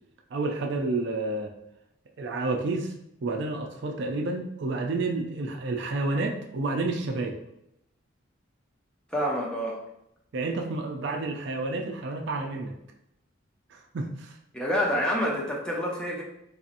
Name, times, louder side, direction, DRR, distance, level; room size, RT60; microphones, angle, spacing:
voice 1, 0.3-1.5 2.2-2.9 3.2-7.4 10.3-12.7 13.7-14.4, right 3 dB, 60° right, 2 dB, 0.4 m, -30 dB
voice 2, 9.1-9.8 14.5-16.2, equal, 5° left, -4 dB, 0.6 m, -27 dB
4.0 x 2.7 x 2.5 m, 0.82 s
head